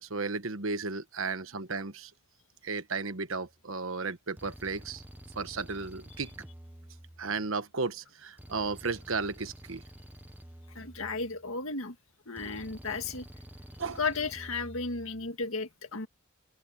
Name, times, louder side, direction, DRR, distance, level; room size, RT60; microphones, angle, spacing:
voice 1, 0.0-2.1 2.6-5.0 5.3-6.3 7.2-9.8 13.8-14.0, right 4 dB, 70° right, 1.3 m, -34 dB
sound 1, 3.3-3.6 4.4-7.6 8.4-11.6 12.4-15.3, right 1 dB, 10° right, 1.0 m, -49 dB
voice 2, 10.8-12.0 12.3-13.3 14.0-16.1, left 4 dB, 75° left, 1.9 m, -34 dB
head